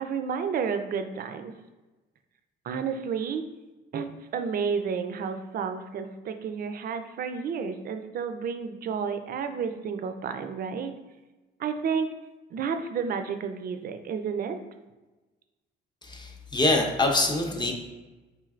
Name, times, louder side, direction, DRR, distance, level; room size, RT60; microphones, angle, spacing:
voice 1, 0.0-1.5 2.6-3.4 3.9-10.9 11.6-12.1 12.5-14.6, right 6 dB, 50° right, 8 dB, 0.4 m, -31 dB
voice 2, 16.0-17.7, left 2 dB, 20° left, 2 dB, 0.6 m, -25 dB
4.0 x 3.1 x 2.4 m, 1.1 s
cardioid pair, 90°, 20 cm